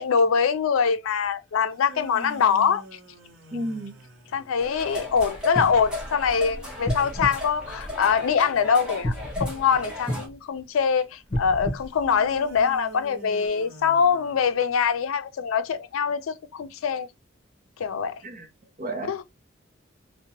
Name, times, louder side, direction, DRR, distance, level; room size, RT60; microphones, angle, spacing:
voice 1, 0.0-2.8 3.5-3.7 4.3-9.1 9.4-17.1 17.8-18.2 19.0-19.2, left 6 dB, 90° left, 0.4 m, -23 dB
sound 1, 1.6-4.9 12.0-15.0, equal, 85° right, 0.8 m, -45 dB
voice 2, 3.5-4.0 18.2-18.5 18.8-19.2, right 1 dB, 40° right, 0.6 m, -32 dB
sound 2, 4.6-10.3, left 1 dB, 5° right, 0.7 m, -34 dB
sound 3, 6.8-8.5 9.0-10.6 11.2-12.9 13.5-13.6, left 1 dB, 45° left, 0.9 m, -32 dB
2.8 x 2.1 x 2.7 m
head